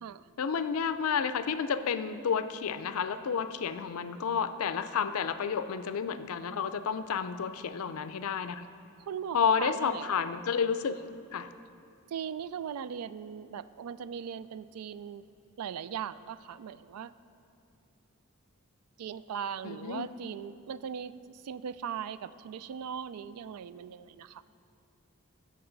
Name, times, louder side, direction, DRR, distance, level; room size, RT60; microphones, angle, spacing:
voice 1, 0.4-8.7 9.3-11.0 11.3-11.5 19.6-20.1, left 6 dB, 70° left, 12 dB, 0.4 m, -31 dB
voice 2, 9.1-10.1 12.1-15.2 15.6-17.1 19.0-24.4, right 7 dB, 85° right, 15 dB, 0.3 m, -39 dB
16.5 x 6.6 x 3.9 m, 2.6 s
head